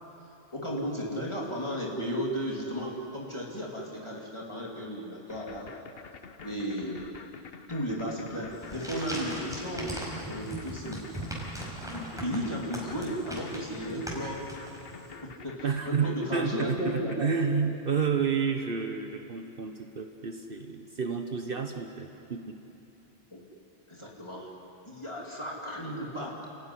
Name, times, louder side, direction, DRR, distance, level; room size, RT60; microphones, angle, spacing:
voice 1, 0.5-5.7 6.4-7.1 7.7-11.0 11.8-14.4 15.2-17.3 23.3-23.4 23.9-24.5 24.9-26.5, equal, 25° left, -4 dB, 2.9 m, -34 dB
sound 1, 5.3-17.2, left 5 dB, 60° left, 1.2 m, -47 dB
sound 2, 8.5-15.1, right 1 dB, 5° right, 5.1 m, -39 dB
voice 2, 15.6-22.6, right 5 dB, 55° right, 4 dB, 1.2 m, -30 dB
29.0 x 16.0 x 9.8 m, 2.9 s
omnidirectional pair, 1.1 m